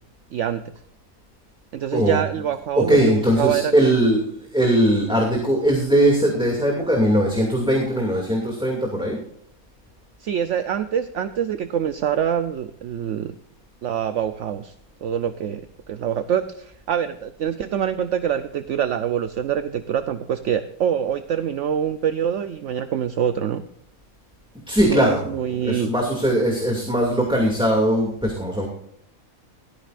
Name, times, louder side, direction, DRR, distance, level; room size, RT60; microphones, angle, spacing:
voice 1, 0.3-0.6 1.7-3.7 10.2-13.4 13.8-14.7 15.0-23.6 24.9-25.9, right 9 dB, 65° right, 11 dB, 0.9 m, -25 dB
voice 2, 2.8-9.2 24.7-28.7, right 1 dB, 5° right, 0 dB, 2.4 m, -20 dB
16.5 x 13.5 x 2.5 m, 0.70 s
omnidirectional pair, 1.5 m